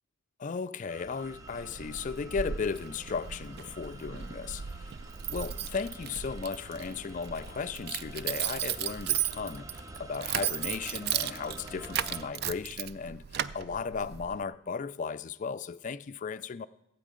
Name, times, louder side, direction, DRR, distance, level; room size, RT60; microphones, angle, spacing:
voice 1, 0.4-4.9 5.3-16.7, left 5 dB, 35° left, 0.3 m, -36 dB
sound 1, 0.9-12.3, right 1 dB, 15° right, 0.7 m, -48 dB
Keys jangling, 1.3-14.4, right 10 dB, 50° right, 0.4 m, -36 dB
16.0 x 8.3 x 5.0 m
head